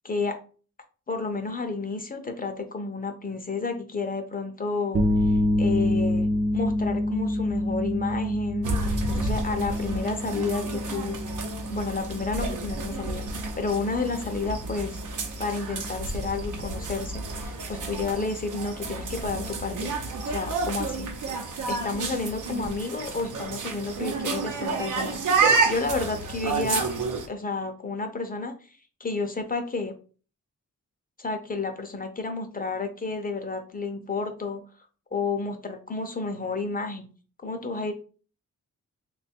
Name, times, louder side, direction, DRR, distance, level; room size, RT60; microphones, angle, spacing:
voice 1, 0.0-0.4 1.1-6.3 6.5-11.2 11.7-14.9 15.4-21.1 21.7-26.9 27.3-28.5 29.0-29.9 31.2-34.6 35.1-37.1 37.4-37.9, left 3 dB, 30° left, 6 dB, 0.5 m, -31 dB
sound 1, 4.9-20.9, left 1 dB, 30° right, 0.5 m, -29 dB
sound 2, 8.6-27.3, right 4 dB, 75° right, 0.8 m, -30 dB
3.0 x 2.3 x 4.2 m, 0.38 s
wide cardioid pair, 120°, 31 cm